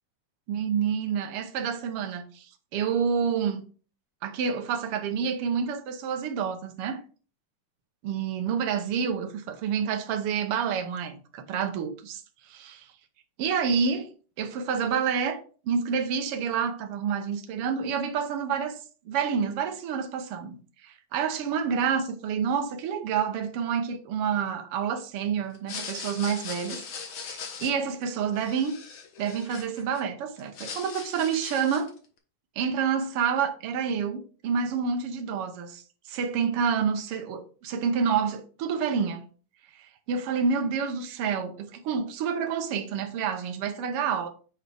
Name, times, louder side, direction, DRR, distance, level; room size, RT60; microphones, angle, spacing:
voice 1, 0.5-3.7 4.2-7.0 8.0-12.2 12.5-12.9 13.4-14.1 14.4-15.4 15.6-18.8 19.0-26.8 27.2-28.7 29.2-31.9 32.6-39.3 40.1-44.3, right 6 dB, 80° right, 1.3 m, -28 dB
sound 1, 25.5-30.0 30.4-32.0, left 6 dB, 65° left, 1.3 m, -40 dB
9.1 x 4.4 x 3.4 m
omnidirectional pair, 3.7 m